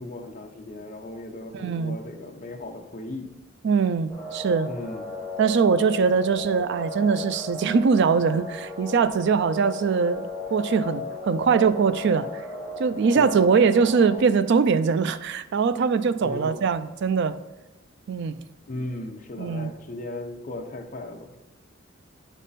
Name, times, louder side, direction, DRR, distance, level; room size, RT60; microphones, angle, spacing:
voice 1, 0.0-3.3 4.7-5.2 13.1-13.4 16.2-16.6 18.7-21.4, left 2 dB, 40° left, 3 dB, 0.8 m, -36 dB
voice 2, 1.5-2.0 3.6-4.7 5.4-12.4 12.8-17.4 18.1-18.4 19.4-19.7, right 5 dB, 60° right, 13 dB, 0.4 m, -22 dB
sound 1, 4.1-14.2, left 2 dB, 5° left, 1.6 m, -36 dB
9.4 x 3.6 x 4.1 m, 0.99 s
head